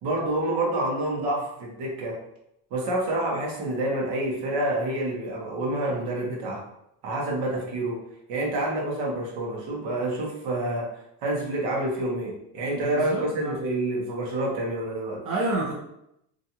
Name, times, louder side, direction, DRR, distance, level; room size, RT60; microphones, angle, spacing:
voice 1, 0.0-2.2 2.7-6.6 7.0-8.0 8.3-10.9 11.2-15.2, right 1 dB, 70° right, -2 dB, 1.0 m, -28 dB
voice 2, 12.8-13.5 15.2-15.7, right 2 dB, 50° right, -4 dB, 0.7 m, -29 dB
2.6 x 2.3 x 2.8 m, 0.81 s
cardioid pair, 135°, 43 cm